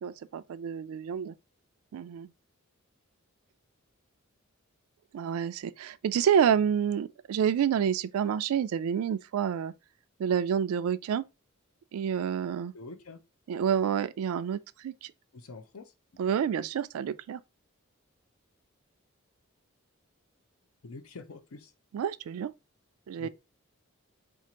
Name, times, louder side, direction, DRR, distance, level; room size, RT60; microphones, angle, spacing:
voice 1, 0.0-1.3 1.9-2.3 5.1-9.7 10.2-11.2 11.9-12.7 13.5-15.1 16.2-17.4 21.9-22.5 23.1-23.3, right 8 dB, 85° right, 0.3 m, -28 dB
voice 2, 12.7-13.2 15.3-15.9 20.8-21.7 23.2-23.3, left 3 dB, 85° left, 0.6 m, -45 dB
4.4 x 2.5 x 2.8 m
head